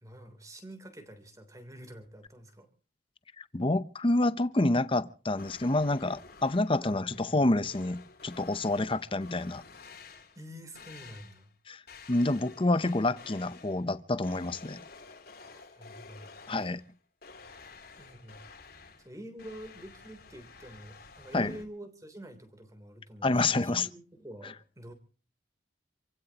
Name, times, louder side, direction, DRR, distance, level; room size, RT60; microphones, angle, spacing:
voice 1, 0.0-2.7 6.8-7.3 10.3-11.5 15.4-16.6 18.0-18.4 19.0-24.9, right 1 dB, 15° right, 3.3 m, -47 dB
voice 2, 3.4-9.6 11.7-11.8 12.1-14.8 16.5-16.8 21.3-21.6 23.2-23.9, left 2 dB, 25° left, 0.7 m, -28 dB
sound 1, 5.4-6.8 7.1-10.5 10.7-11.5 11.9-13.9 14.2-16.9 17.2-21.6, left 4 dB, 55° left, 3.3 m, -51 dB
28.0 x 16.0 x 2.9 m
head